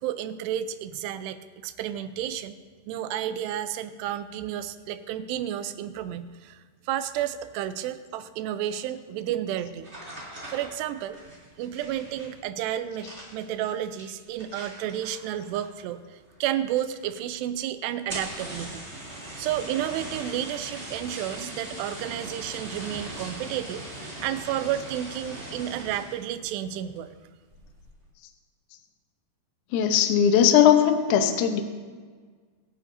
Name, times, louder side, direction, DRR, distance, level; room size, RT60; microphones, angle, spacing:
voice 1, 0.0-2.5 2.9-9.9 10.5-11.2 11.6-18.8 19.4-23.8 24.2-27.1, right 11 dB, 85° right, 11 dB, 2.7 m, -31 dB
sound 1, 9.8-15.9 16.2-16.7 17.0-17.1 17.4-17.5 17.9-26.3 26.7-27.1 27.5-27.9, right 1 dB, 20° right, 2.4 m, -40 dB
voice 2, 29.7-31.6, left 9 dB, 85° left, 6 dB, 1.7 m, -19 dB
24.0 x 9.2 x 2.7 m, 1.5 s
omnidirectional pair, 4.8 m